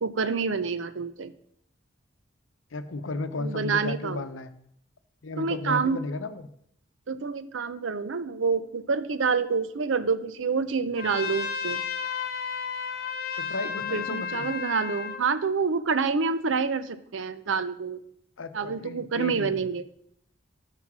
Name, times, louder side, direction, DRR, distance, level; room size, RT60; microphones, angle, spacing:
voice 1, 0.0-1.3 3.4-4.2 5.4-6.0 7.1-11.8 13.9-18.0 18.5-19.8, right 5 dB, 75° right, 13 dB, 0.6 m, -27 dB
voice 2, 2.7-4.5 5.2-6.5 13.4-14.5 18.4-19.7, left 2 dB, 85° left, 11 dB, 0.7 m, -34 dB
Trumpet, 11.0-15.2, left 6 dB, 50° left, 0.9 m, -33 dB
9.6 x 5.8 x 6.1 m, 0.71 s
head